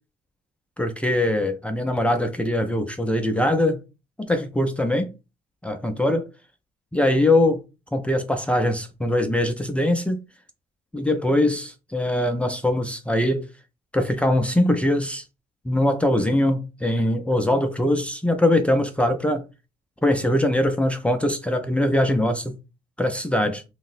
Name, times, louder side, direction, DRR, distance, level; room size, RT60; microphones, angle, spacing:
voice 1, 0.8-3.8 4.2-5.1 5.6-6.3 6.9-7.6 7.9-10.2 10.9-13.4 13.9-15.2 15.7-19.4 20.0-22.6 23.0-23.6, left 1 dB, 5° left, 0.3 m, -22 dB
2.8 x 2.0 x 3.9 m
cardioid pair, 130°, 17 cm